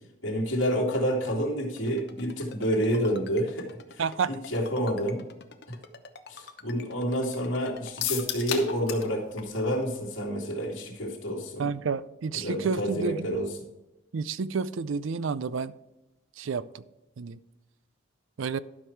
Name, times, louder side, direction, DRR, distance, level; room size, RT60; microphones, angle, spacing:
voice 1, 0.2-5.2 5.7-5.8 6.3-11.7 12.3-13.5, equal, 70° left, -3 dB, 2.7 m, -29 dB
Ringtone, 1.8-8.6, left 5 dB, 55° left, 0.9 m, -47 dB
voice 2, 4.0-4.3 11.6-13.3 14.1-15.7 16.4-16.8 17.2-17.4 18.4-18.6, right 5 dB, 75° right, 16 dB, 0.4 m, -30 dB
sound 1, 8.0-9.1 9.4-9.5 9.8-9.9, left 9 dB, 90° left, 1.6 m, -31 dB
12.5 x 6.1 x 4.6 m, 0.99 s
head